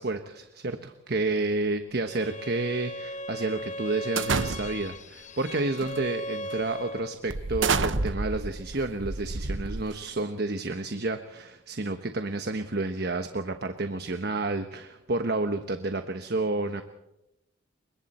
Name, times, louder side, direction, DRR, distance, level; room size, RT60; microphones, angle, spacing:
voice 1, 0.0-16.8, right 2 dB, 60° right, 7 dB, 1.2 m, -30 dB
Bowed string instrument, 2.1-7.2, equal, 40° left, 0.7 m, -37 dB
sound 1, 4.2-5.0 5.8-6.0 6.5-6.6 7.3-10.2, right 4 dB, 85° right, 1.1 m, -29 dB
28.5 x 23.5 x 4.4 m, 0.91 s
head